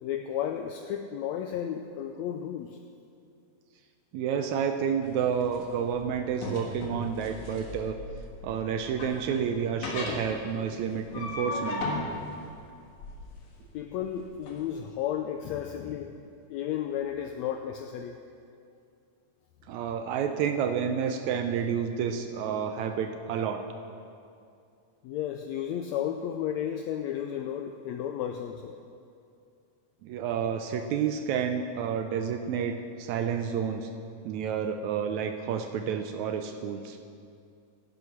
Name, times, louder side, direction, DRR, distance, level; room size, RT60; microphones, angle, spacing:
voice 1, 0.0-2.8 13.7-16.2 16.5-18.2 25.0-28.8, left 9 dB, 90° left, 6 dB, 1.5 m, -33 dB
voice 2, 4.1-8.0 8.4-11.9 19.7-23.6 30.0-33.9 34.2-37.0, right 7 dB, 80° right, 7 dB, 1.8 m, -30 dB
sound 1, 5.0-14.6, left 2 dB, 65° left, 2.9 m, -37 dB
16.0 x 8.1 x 5.8 m, 2.5 s
omnidirectional pair, 3.7 m